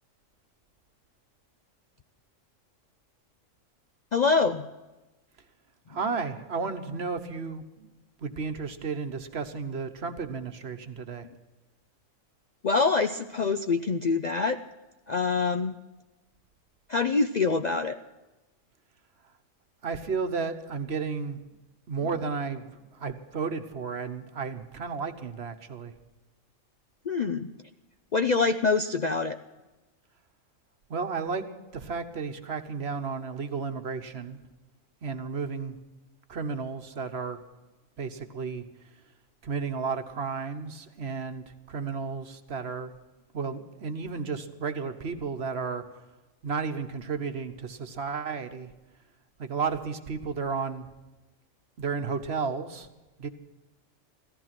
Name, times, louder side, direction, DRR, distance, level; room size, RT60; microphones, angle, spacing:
voice 1, 4.1-4.7 12.6-14.6 15.1-15.8 16.9-18.0 27.1-27.5 28.1-29.4, left 4 dB, 50° left, 8 dB, 0.5 m, -25 dB
voice 2, 5.9-7.9 8.2-11.3 19.8-21.4 21.9-25.9 30.9-34.4 35.0-35.8 36.3-37.4 38.0-38.6 39.4-42.9 43.3-45.8 46.4-48.7 49.4-50.9 51.8-52.9 53.2-53.3, right 5 dB, 55° right, 7 dB, 1.3 m, -33 dB
16.0 x 14.0 x 5.9 m, 1.1 s
omnidirectional pair, 1.3 m